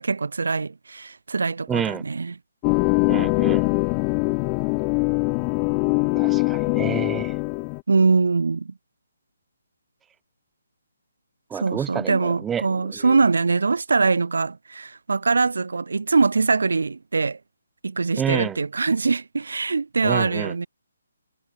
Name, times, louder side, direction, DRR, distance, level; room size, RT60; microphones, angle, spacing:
voice 1, 0.0-2.3 7.9-8.7 11.5-17.4 17.8-20.7, right 4 dB, 70° right, 5.1 m, -23 dB
voice 2, 1.7-2.0 3.1-3.7 6.2-7.4 11.5-13.2 18.2-18.6 20.0-20.5, right 8 dB, 5° right, 1.2 m, -29 dB
sound 1, 2.6-7.8, left 40 dB or more, 10° left, 0.4 m, -22 dB
hypercardioid pair, 180°, 0 cm